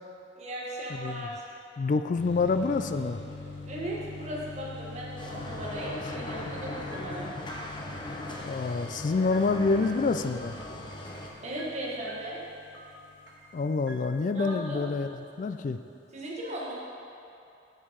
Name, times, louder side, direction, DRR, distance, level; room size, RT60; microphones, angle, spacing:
voice 1, 0.3-1.4 3.6-7.3 11.4-12.4 14.3-14.8 16.1-16.7, right 1 dB, 40° right, -4 dB, 1.4 m, -37 dB
voice 2, 0.9-1.3 1.8-3.2 6.4-6.5 8.4-10.6 13.5-15.8, left 4 dB, 45° left, 9 dB, 0.3 m, -27 dB
sound 1, 2.2-14.6, left 3 dB, 80° left, 0.8 m, -45 dB
sound 2, 5.2-11.3, left 1 dB, 25° left, 0.7 m, -39 dB
sound 3, 6.9-14.6, right 1 dB, 80° right, 1.1 m, -50 dB
7.2 x 6.6 x 5.1 m, 2.7 s
head